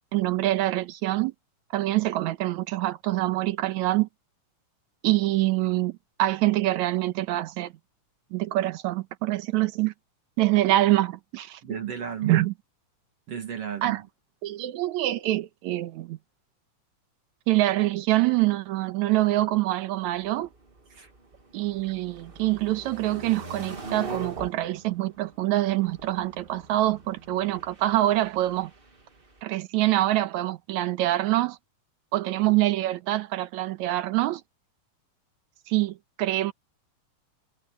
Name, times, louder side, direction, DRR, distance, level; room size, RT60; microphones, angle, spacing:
voice 1, 0.1-1.3 1.7-4.1 5.0-7.7 8.3-9.9 10.4-11.6 12.2-12.5 13.8-14.0 14.4-16.2 17.5-20.5 21.5-28.7 29.4-31.6 32.1-34.4 35.7-36.5, right 16 dB, 70° right, 2.1 m, -25 dB
voice 2, 11.6-12.4 13.3-14.1 20.9-21.1, right 9 dB, 50° right, 2.8 m, -33 dB
sound 1, 20.1-29.4, right 4 dB, 25° right, 1.3 m, -42 dB
omnidirectional pair, 3.7 m